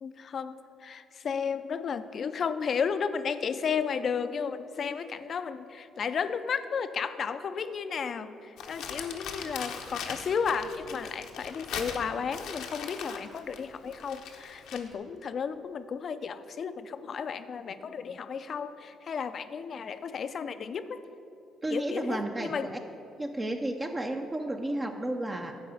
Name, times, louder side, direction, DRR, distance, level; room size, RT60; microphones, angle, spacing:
voice 1, 0.0-21.0 21.7-22.7, left 6 dB, 50° left, 12 dB, 0.5 m, -33 dB
Crumpling crinkling, 8.6-14.9, left 7 dB, 80° left, 0.9 m, -40 dB
voice 2, 21.6-22.8 23.2-25.6, right 1 dB, 20° right, 4 dB, 0.6 m, -32 dB
10.5 x 4.8 x 7.8 m, 2.9 s
cardioid pair, 85°, 0 cm